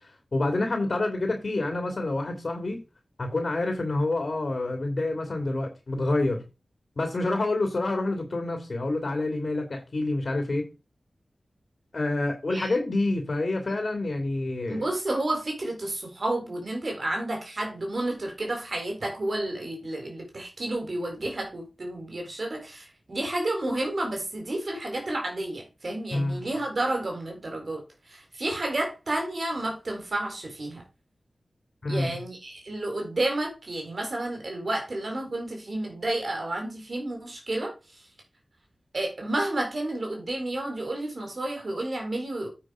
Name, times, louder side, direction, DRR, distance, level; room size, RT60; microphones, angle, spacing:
voice 1, 0.3-2.8 3.2-6.4 7.0-10.7 11.9-14.8 26.1-26.5 31.8-32.2, left 2 dB, 55° left, 2.8 m, -27 dB
voice 2, 14.7-27.8 28.1-30.8 31.9-38.0 38.9-42.5, right 1 dB, 60° right, 4.1 m, -31 dB
9.0 x 6.0 x 5.0 m
cardioid pair, 45°, 0 cm